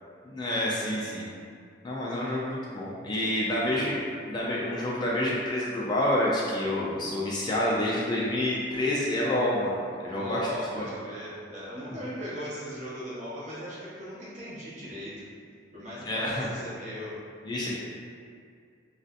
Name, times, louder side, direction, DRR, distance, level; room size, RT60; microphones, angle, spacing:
voice 1, 0.2-1.2 1.8-4.0 4.3-10.5 10.7-10.9 16.0-16.5 17.4-17.7, left 1 dB, 25° left, -5 dB, 0.3 m, -28 dB
voice 2, 3.5-4.0 10.1-15.1 15.7-17.1 17.6-17.7, equal, 40° right, -8 dB, 0.7 m, -38 dB
2.4 x 2.3 x 2.5 m, 2.2 s
head